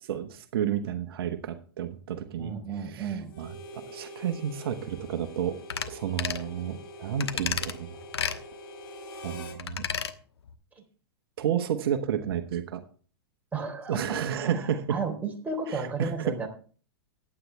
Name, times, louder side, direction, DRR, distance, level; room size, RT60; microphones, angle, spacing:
voice 1, 0.1-5.6 5.9-8.0 9.2-9.8 11.4-12.8 13.9-15.0 15.7-16.5, right 9 dB, 65° right, 7 dB, 1.2 m, -31 dB
voice 2, 2.4-3.3 13.5-16.5, right 4 dB, 10° right, 1 dB, 3.7 m, -33 dB
Harmonica, 3.3-9.6, equal, 60° left, 3.2 m, -44 dB
sound 1, 5.7-5.9 6.2-6.5 7.2-7.7 8.1-8.4 9.6-10.1 10.5-10.6, left 7 dB, 90° left, 1.2 m, -31 dB
15.0 x 9.7 x 3.4 m, 0.41 s
hypercardioid pair, 120°, 13 cm